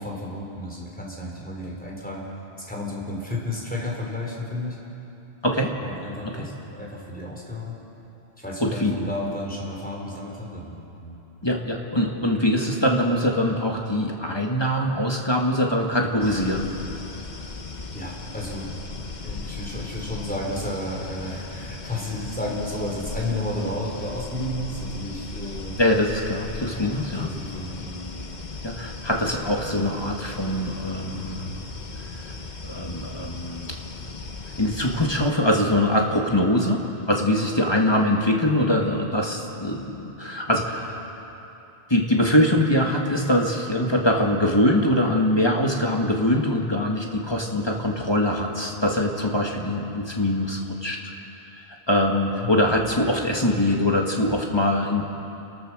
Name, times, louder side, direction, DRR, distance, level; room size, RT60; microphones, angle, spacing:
voice 1, 0.0-2.2 2.7-4.8 5.8-7.8 8.4-11.2 17.9-18.7 19.2-25.7 26.7-28.1 52.1-52.5, left 1 dB, 10° left, -3 dB, 4.1 m, -32 dB
voice 2, 5.4-5.7 6.2-6.5 8.6-9.0 11.4-16.7 25.8-27.3 28.6-31.7 32.1-32.2 32.6-33.8 34.6-41.1 41.9-51.0 51.9-55.1, left 1 dB, 25° left, 0 dB, 1.9 m, -23 dB
sound 1, 16.2-35.3, left 3 dB, 45° left, 1.1 m, -37 dB
30.0 x 14.5 x 6.3 m, 3.0 s
omnidirectional pair, 1.1 m